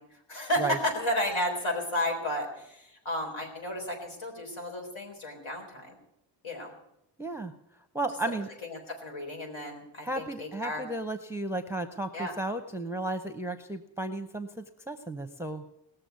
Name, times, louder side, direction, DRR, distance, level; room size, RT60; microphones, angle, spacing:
voice 1, 0.0-6.0 6.4-6.7 8.3-8.4 8.6-10.8 12.1-12.3, left 1 dB, 90° left, 2 dB, 4.1 m, -33 dB
voice 2, 7.2-7.5 7.9-8.5 10.0-15.6, right 2 dB, 5° right, 9 dB, 0.6 m, -34 dB
19.0 x 6.9 x 9.3 m, 0.81 s
wide cardioid pair, 155°, 45 cm